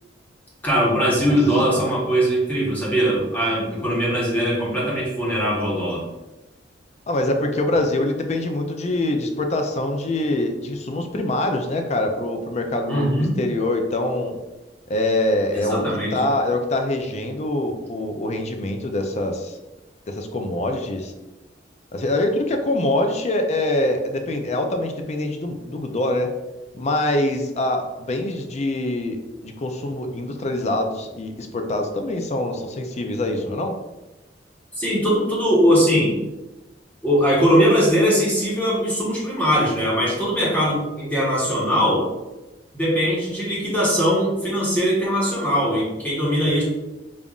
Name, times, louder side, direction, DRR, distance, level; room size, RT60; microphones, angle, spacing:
voice 1, 0.6-6.0 12.9-13.3 15.5-16.2 34.7-36.2 37.0-42.1 42.7-46.6, equal, 10° left, -6 dB, 1.1 m, -20 dB
voice 2, 7.1-14.4 14.9-15.8 16.1-19.6 20.1-21.1 21.9-26.3 26.7-29.2 29.4-33.7, left 1 dB, 40° left, 5 dB, 0.4 m, -24 dB
5.3 x 2.5 x 2.4 m, 1.0 s
head